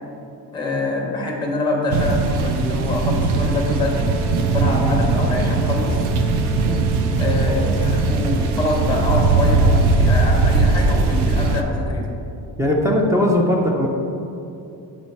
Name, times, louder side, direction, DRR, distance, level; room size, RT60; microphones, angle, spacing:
voice 1, 0.5-4.1 4.5-6.0 7.2-12.0, left 2 dB, 10° left, 0 dB, 0.7 m, -24 dB
sound 1, 1.9-11.6, right 3 dB, 85° right, 0.6 m, -19 dB
Brass instrument, 3.3-11.3, right 3 dB, 50° right, 1.3 m, -37 dB
voice 2, 12.6-13.9, left 1 dB, 10° right, -1 dB, 0.3 m, -19 dB
7.4 x 3.2 x 4.3 m, 2.7 s
cardioid pair, 175°, 39 cm